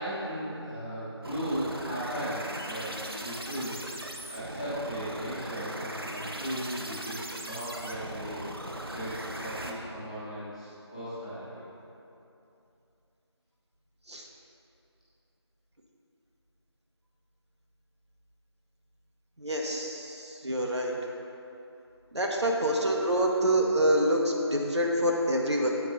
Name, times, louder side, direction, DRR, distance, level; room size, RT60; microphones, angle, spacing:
voice 1, 0.0-3.8 4.3-8.4 8.8-11.6, equal, 15° left, -14 dB, 1.5 m, -36 dB
sound 1, 1.2-9.7, right 1 dB, 55° right, 0.7 m, -39 dB
voice 2, 19.4-20.9 22.1-25.7, right 1 dB, 75° right, -1 dB, 1.2 m, -26 dB
8.5 x 4.7 x 5.2 m, 2.8 s
figure-of-eight pair, 180°, 15 cm